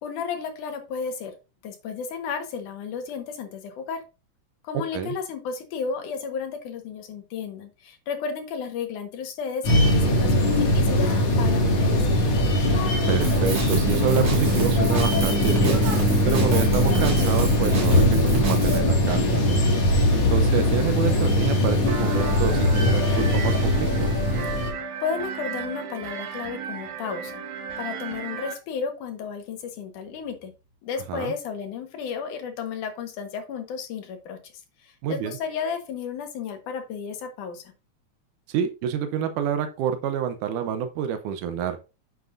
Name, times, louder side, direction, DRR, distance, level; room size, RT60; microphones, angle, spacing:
voice 1, 0.0-1.3 1.6-4.0 4.6-11.1 11.4-12.5 25.0-27.4 27.8-30.5 30.8-34.4 34.8-37.6, left 6 dB, 85° left, 5 dB, 2.9 m, -33 dB
sound 1, 9.6-24.7, left 1 dB, 55° left, 3.1 m, -21 dB
voice 2, 13.1-15.8 16.3-19.6 20.1-24.1 31.1-31.3 35.0-35.4 38.5-41.8, right 8 dB, 90° right, 8 dB, 2.3 m, -28 dB
Drum kit, 13.2-18.8, right 4 dB, 55° right, 2.8 m, -27 dB
sound 2, 21.9-28.5, right 6 dB, 70° right, 2.5 m, -34 dB
9.3 x 7.4 x 2.6 m, 0.30 s
omnidirectional pair, 3.5 m